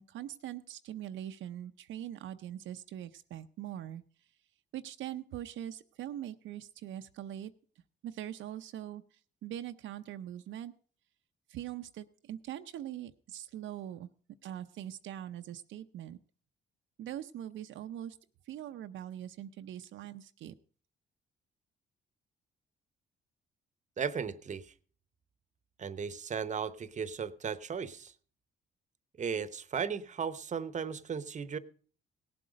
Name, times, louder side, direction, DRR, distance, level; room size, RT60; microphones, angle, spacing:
voice 1, 0.0-4.0 4.7-7.5 8.0-10.7 11.5-14.1 14.4-16.2 17.0-18.2 18.5-20.5, right 11 dB, 75° right, 8 dB, 0.6 m, -42 dB
voice 2, 24.0-24.7 25.8-28.1 29.2-31.6, right 6 dB, 35° right, 15 dB, 0.8 m, -36 dB
17.5 x 7.8 x 5.1 m, 0.43 s
cardioid pair, 90°, 20 cm